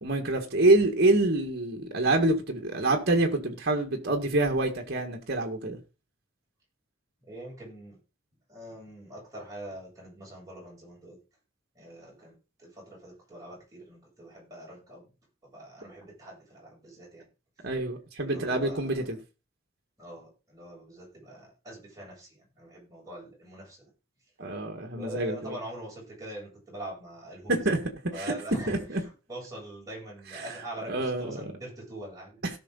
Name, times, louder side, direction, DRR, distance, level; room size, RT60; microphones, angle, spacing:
voice 1, 0.0-5.8 17.6-19.2 24.4-25.6 27.5-27.8 28.2-28.3 28.7-29.0 30.3-30.4 30.9-31.4, right 2 dB, 50° right, 1.9 m, -26 dB
voice 2, 7.2-8.0 8.5-11.2 11.7-12.3 12.6-15.1 15.4-17.3 18.2-19.2 20.0-23.9 24.9-27.8 28.1-29.0 29.3-32.4, right 1 dB, 15° right, 7.9 m, -43 dB
17.5 x 6.0 x 4.1 m
head